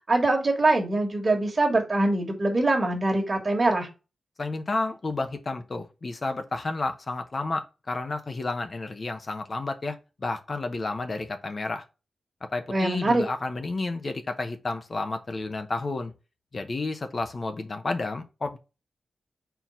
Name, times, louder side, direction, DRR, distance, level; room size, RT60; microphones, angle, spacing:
voice 1, 0.1-3.9 12.7-13.3, right 2 dB, 30° right, 1.8 m, -23 dB
voice 2, 4.4-11.8 12.5-16.1 16.5-18.6, left 3 dB, 35° left, 0.8 m, -31 dB
4.6 x 3.9 x 5.6 m
wide cardioid pair, 145°, 0 cm